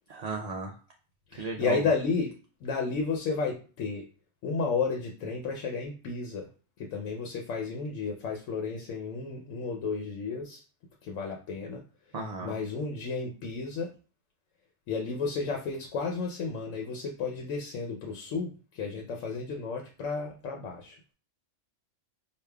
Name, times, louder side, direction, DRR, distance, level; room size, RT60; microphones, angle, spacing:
voice 1, 0.1-0.7 1.4-1.9 12.1-12.5, right 4 dB, 60° right, 0 dB, 0.4 m, -34 dB
voice 2, 1.3-2.4 2.6-4.1 4.4-6.5 6.8-10.6 11.0-11.8 12.4-13.9 14.9-21.0, left 4 dB, 85° left, 1 dB, 1.0 m, -32 dB
4.8 x 2.4 x 2.3 m, 0.36 s
omnidirectional pair, 1.3 m